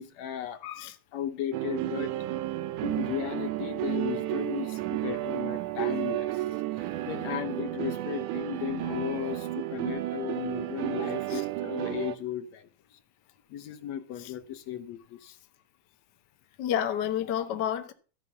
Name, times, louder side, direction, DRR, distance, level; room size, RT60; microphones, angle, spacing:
voice 1, 0.0-2.1 2.8-6.4 6.8-12.7 13.5-15.4, left 11 dB, 70° left, 2.1 m, -35 dB
sound 1, 1.5-12.2, right 15 dB, 90° right, 2.3 m, -32 dB
voice 2, 16.6-17.9, left 10 dB, 55° left, 1.3 m, -30 dB
14.0 x 5.5 x 8.0 m
omnidirectional pair, 3.4 m